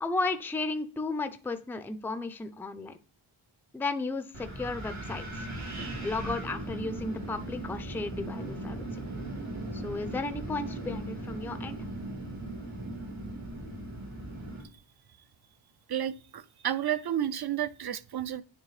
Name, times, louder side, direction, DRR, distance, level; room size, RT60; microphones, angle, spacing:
voice 1, 0.0-2.9 3.7-5.5 6.0-8.8 9.7-11.8, left 3 dB, 5° left, 0.4 m, -34 dB
Wind, 4.3-14.6, right 1 dB, 80° right, 2.0 m, -38 dB
voice 2, 15.9-18.4, right 10 dB, 50° right, 0.5 m, -31 dB
9.8 x 3.4 x 3.2 m
wide cardioid pair, 90°, 49 cm